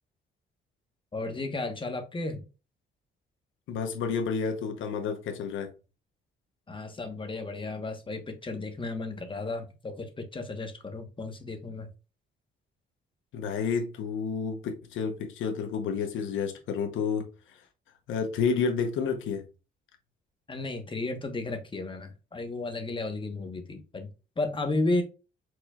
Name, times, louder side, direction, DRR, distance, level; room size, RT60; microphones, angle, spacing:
voice 1, 1.1-2.4 6.7-11.9 20.5-24.1 24.4-25.0, left 2 dB, 25° left, 1.2 m, -33 dB
voice 2, 3.7-5.7 13.3-17.6 18.1-19.4, left 6 dB, 80° left, 0.9 m, -30 dB
4.6 x 4.2 x 2.4 m
cardioid pair, 90°, 20 cm